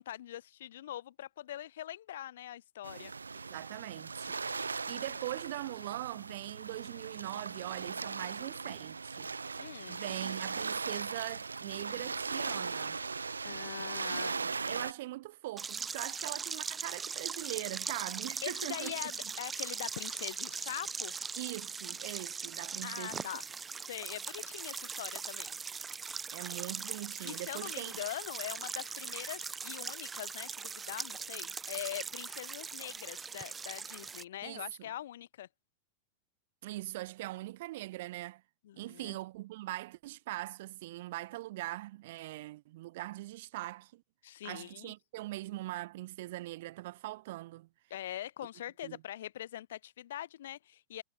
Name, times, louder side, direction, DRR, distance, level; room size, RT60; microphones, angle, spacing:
voice 1, 0.0-3.1 9.6-10.0 13.4-14.4 18.4-21.2 22.8-23.5 23.8-25.6 27.2-35.5 38.6-39.2 44.2-44.9 47.9-51.0, left 12 dB, 60° left, 5.6 m, -43 dB
sound 1, 2.8-14.9, right 4 dB, 75° right, 3.3 m, -39 dB
voice 2, 3.3-9.3 9.9-13.0 14.0-18.9 21.4-23.3 26.3-28.0 34.4-34.9 36.6-38.4 38.8-44.0 44.4-47.7 48.8-49.0, right 17 dB, 55° right, 5.1 m, -42 dB
sound 2, 15.6-34.2, right 5 dB, 15° right, 1.7 m, -40 dB
figure-of-eight pair, 90°, 0 cm